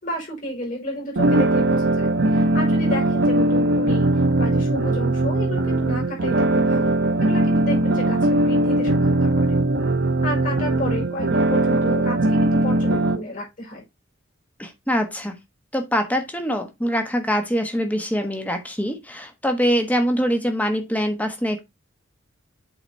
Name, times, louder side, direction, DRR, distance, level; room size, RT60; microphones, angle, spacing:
voice 1, 0.0-4.1 4.4-9.6 10.2-13.8, left 1 dB, 40° left, 4.8 m, -31 dB
sound 1, 1.2-13.2, right 2 dB, 60° right, 1.0 m, -20 dB
voice 2, 14.6-15.4 15.7-21.6, equal, 10° left, 1.3 m, -24 dB
8.0 x 4.2 x 4.2 m
head